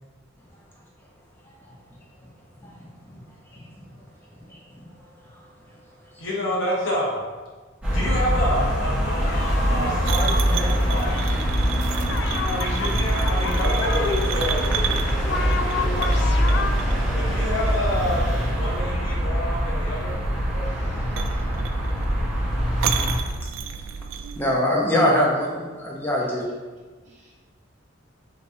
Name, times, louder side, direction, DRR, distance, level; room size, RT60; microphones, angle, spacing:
voice 1, 6.2-7.2 7.9-11.2 12.5-16.6 17.1-18.2 18.5-20.1, equal, 80° left, -3 dB, 1.0 m, -28 dB
sound 1, 7.8-23.2, equal, 10° right, 1.2 m, -23 dB
sound 2, 8.4-8.5 9.1-11.4 12.1-12.9 13.1-14.4 15.2-16.7, left 5 dB, 60° left, 0.4 m, -32 dB
sound 3, 10.0-24.4, right 7 dB, 80° right, 0.3 m, -33 dB
voice 2, 20.5-21.9 27.0-27.3, equal, 35° right, -5 dB, 1.0 m, -43 dB
voice 3, 24.4-26.4, left 1 dB, 10° left, -4 dB, 0.7 m, -23 dB
5.1 x 3.1 x 2.6 m, 1.4 s
head